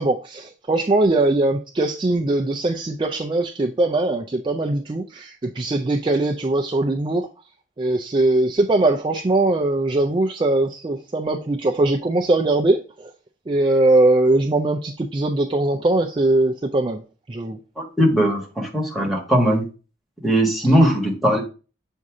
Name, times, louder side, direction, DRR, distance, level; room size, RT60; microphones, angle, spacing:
voice 1, 0.0-7.3 7.8-13.1 13.5-17.0 17.3-17.6, right 2 dB, 25° right, 0.4 m, -21 dB
voice 2, 17.8-19.7 20.2-21.4, equal, ahead, 1.2 m, -19 dB
7.4 x 2.7 x 4.7 m
head